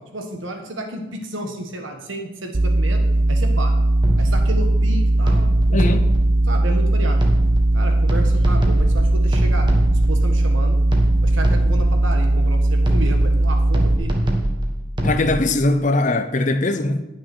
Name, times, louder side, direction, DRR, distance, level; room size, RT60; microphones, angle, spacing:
voice 1, 0.1-3.0 3.3-3.7 4.2-6.0 6.5-7.2 7.7-10.8 11.2-14.1, right 1 dB, 75° right, 1.6 m, -31 dB
sound 1, 2.5-14.0, right 1 dB, 45° right, 0.6 m, -18 dB
sound 2, 4.0-4.6 5.3-6.3 7.2-7.7 8.1-10.2 10.9-12.0 12.9-13.4 13.7-15.2, right 1 dB, 25° right, 1.4 m, -24 dB
voice 2, 5.7-6.1 15.0-17.0, left 2 dB, 40° left, 0.7 m, -20 dB
10.0 x 6.4 x 6.2 m
head